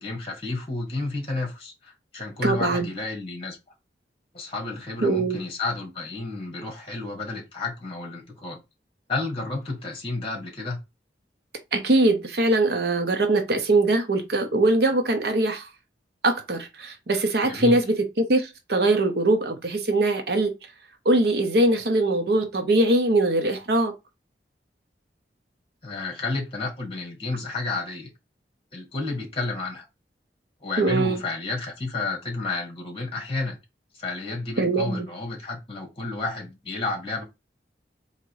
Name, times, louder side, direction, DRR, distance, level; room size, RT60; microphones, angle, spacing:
voice 1, 0.0-3.6 4.3-8.6 9.1-10.8 17.4-17.8 25.8-28.1 28.7-29.8 30.6-33.6 33.9-37.2, left 3 dB, 30° left, 1.5 m, -31 dB
voice 2, 2.4-2.9 5.0-5.4 11.7-15.7 16.2-20.5 21.0-23.9 30.8-31.2 34.6-35.1, right 2 dB, 65° right, 0.7 m, -22 dB
3.8 x 2.9 x 4.6 m
head